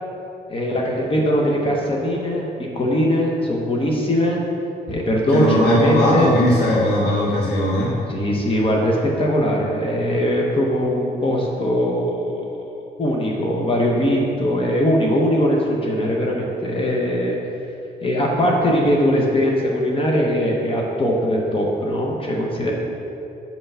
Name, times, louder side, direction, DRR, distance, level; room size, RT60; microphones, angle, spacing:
voice 1, 0.5-2.5 2.7-4.4 4.9-6.3 8.1-12.4 13.0-17.4 18.0-22.7, equal, 35° left, -1 dB, 0.9 m, -20 dB
voice 2, 5.3-8.0, left 1 dB, 85° left, -7 dB, 1.5 m, -18 dB
5.7 x 4.6 x 5.5 m, 2.7 s
wide cardioid pair, 145°, 17 cm